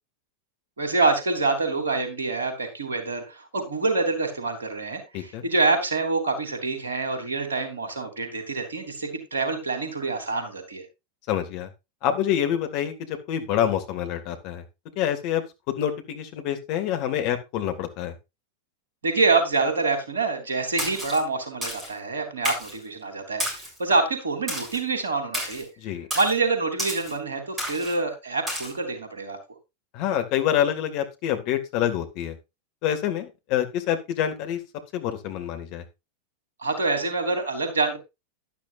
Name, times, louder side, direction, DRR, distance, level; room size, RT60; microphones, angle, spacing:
voice 1, 0.8-10.8 19.0-25.7 26.1-29.4 36.6-38.0, right 3 dB, 70° right, 6 dB, 3.3 m, -26 dB
voice 2, 11.3-11.7 12.0-14.6 15.0-18.1 25.8-26.1 29.9-32.4 32.8-34.6 34.9-35.8, left 10 dB, 45° left, 7 dB, 2.0 m, -27 dB
Splash splatter, 20.8-21.2 21.6-21.9 22.4-22.8 23.4-23.8 24.5-24.8 25.3-25.6 26.1-26.3 26.8-27.1 27.6-27.9 28.5-28.7, equal, 15° right, 7.0 m, -31 dB
12.0 x 11.5 x 2.5 m, 0.24 s
figure-of-eight pair, 90°, 0 cm